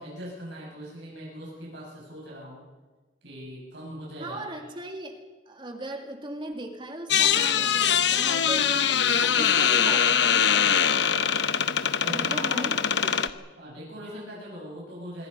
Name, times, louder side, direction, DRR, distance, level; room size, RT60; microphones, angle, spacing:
voice 1, 0.0-2.6 3.2-4.4 12.0-12.8 13.6-15.3, equal, 70° right, -4 dB, 6.8 m, -40 dB
voice 2, 4.2-5.2 5.5-11.3 12.1-13.4, right 1 dB, 25° right, 4 dB, 2.5 m, -38 dB
sound 1, 7.1-13.3, left 8 dB, 75° left, 0.9 m, -23 dB
26.0 x 23.0 x 5.5 m, 1.3 s
head